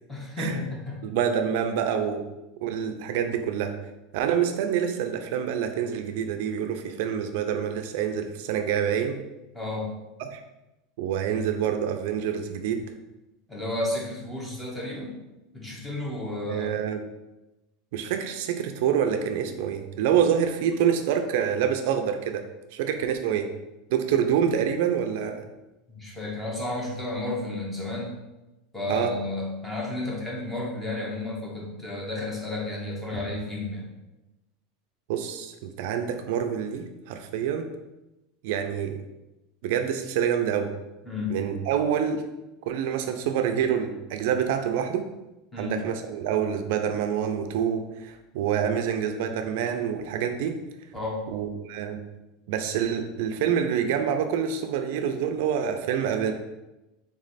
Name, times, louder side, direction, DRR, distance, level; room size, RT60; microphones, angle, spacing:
voice 1, 0.1-1.0 9.5-9.9 13.5-15.2 15.5-16.8 25.9-28.1 28.7-33.9 41.0-41.4 45.5-45.8 50.9-51.2, left 2 dB, 10° left, -3 dB, 1.0 m, -32 dB
voice 2, 1.0-2.2 2.6-3.7 4.1-9.2 10.2-10.4 11.0-12.8 16.5-17.0 17.9-22.4 22.7-23.5 23.9-25.4 28.9-29.1 35.1-37.7 38.4-39.0 39.6-40.7 41.3-42.2 42.7-45.1 45.6-50.6 51.3-52.0 52.5-56.3, right 8 dB, 65° right, 6 dB, 0.4 m, -26 dB
3.6 x 3.1 x 4.0 m, 1.0 s
supercardioid pair, 150°, 0 cm